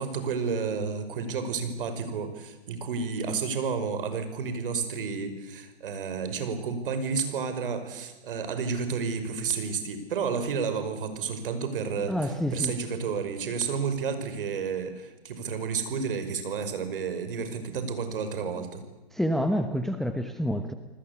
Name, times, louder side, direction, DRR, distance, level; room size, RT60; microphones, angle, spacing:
voice 1, 0.0-18.8, right 5 dB, 55° right, 9 dB, 5.5 m, -31 dB
voice 2, 12.1-12.7 19.1-20.7, equal, ahead, 8 dB, 1.0 m, -28 dB
29.5 x 20.0 x 8.4 m, 1.1 s
hypercardioid pair, 135°, 32 cm